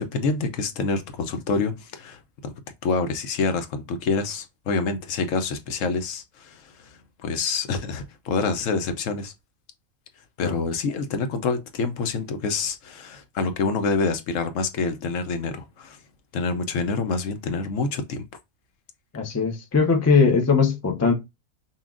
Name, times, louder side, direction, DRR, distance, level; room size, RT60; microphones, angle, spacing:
voice 1, 0.0-2.5 2.8-9.3 10.4-16.0 16.3-18.2, left 4 dB, 75° left, 1.0 m, -27 dB
voice 2, 19.1-21.1, left 5 dB, 20° left, 0.5 m, -20 dB
5.6 x 2.3 x 2.3 m
omnidirectional pair, 1.4 m